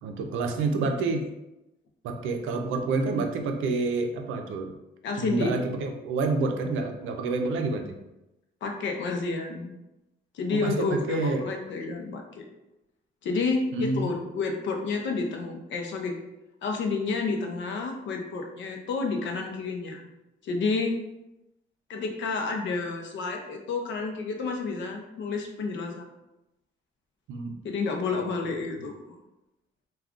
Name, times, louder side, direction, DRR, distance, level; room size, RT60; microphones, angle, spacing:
voice 1, 0.0-1.3 2.0-4.7 5.2-8.0 10.5-11.4 13.7-14.1 27.3-27.5, right 3 dB, 80° right, 5 dB, 0.5 m, -28 dB
voice 2, 5.0-5.5 8.6-9.7 10.3-12.5 13.2-16.2 16.6-20.1 20.4-20.9 21.9-26.1 27.6-29.2, left 4 dB, 70° left, 2 dB, 0.6 m, -30 dB
2.4 x 2.2 x 3.5 m, 0.95 s
cardioid pair, 90°, 20 cm